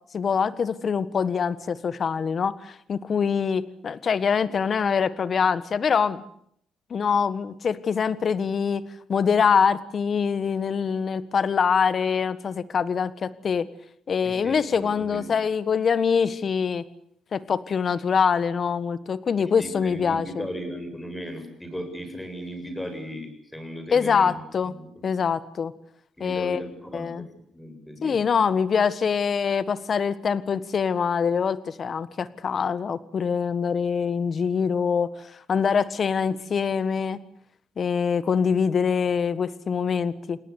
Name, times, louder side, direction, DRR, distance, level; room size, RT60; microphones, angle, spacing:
voice 1, 0.1-6.2 6.9-13.7 14.1-16.8 17.3-20.5 23.9-24.7 25.0-25.7 26.2-26.6 26.9-27.2 28.0-35.1 35.5-37.2 37.8-40.4, left 6 dB, 45° left, 15 dB, 1.5 m, -24 dB
voice 2, 14.2-15.4 19.4-24.3 24.6-25.1 26.2-28.2, equal, 10° left, 7 dB, 7.2 m, -37 dB
29.0 x 19.0 x 8.3 m, 0.67 s
cardioid pair, 85°, 0 cm